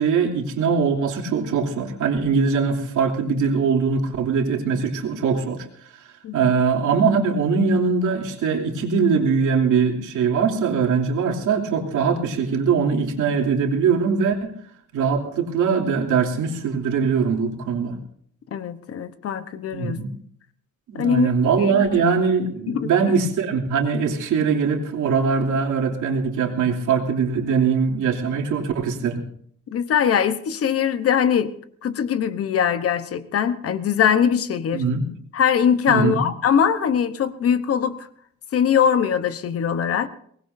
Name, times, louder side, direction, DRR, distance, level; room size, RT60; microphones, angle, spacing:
voice 1, 0.0-5.7 5.9-6.0 6.3-14.5 14.9-18.0 19.7-20.1 20.9-29.2 34.7-35.1 35.9-36.2, right 5 dB, 80° right, 0 dB, 2.9 m, -21 dB
voice 2, 18.5-20.0 20.9-21.3 21.6-21.7 22.7-22.9 29.7-31.5 31.8-34.8 35.3-38.1 38.5-40.1, left 8 dB, 50° left, 12 dB, 1.0 m, -21 dB
23.0 x 19.5 x 2.7 m, 0.63 s
cardioid pair, 150°, 30 cm